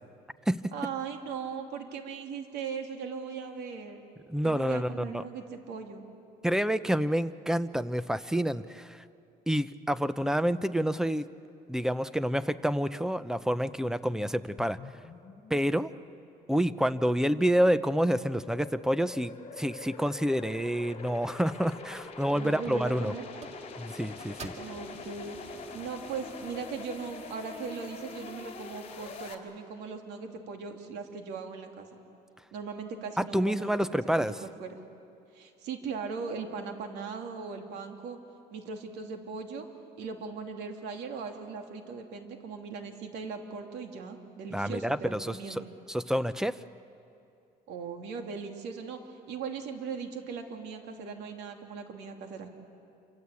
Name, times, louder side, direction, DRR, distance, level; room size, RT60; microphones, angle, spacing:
voice 1, 0.7-4.0 4.4-6.0 22.3-23.4 24.6-32.0 32.5-34.8 35.3-38.2 38.5-39.7 40.0-45.7 47.7-52.5, right 5 dB, 85° right, 4 dB, 2.9 m, -39 dB
voice 2, 4.3-5.2 6.4-9.0 9.5-11.3 11.7-14.8 15.5-15.9 16.5-23.1 23.8-24.5 33.2-34.3 44.5-45.6 45.9-46.6, equal, 5° right, 14 dB, 0.7 m, -28 dB
sound 1, 14.6-29.3, left 4 dB, 40° left, 3.4 m, -45 dB
sound 2, 22.0-22.1 22.4-23.0 23.4-26.7, right 4 dB, 40° right, 2.3 m, -50 dB
28.0 x 25.5 x 8.5 m, 2.7 s
cardioid pair, 110°, 17 cm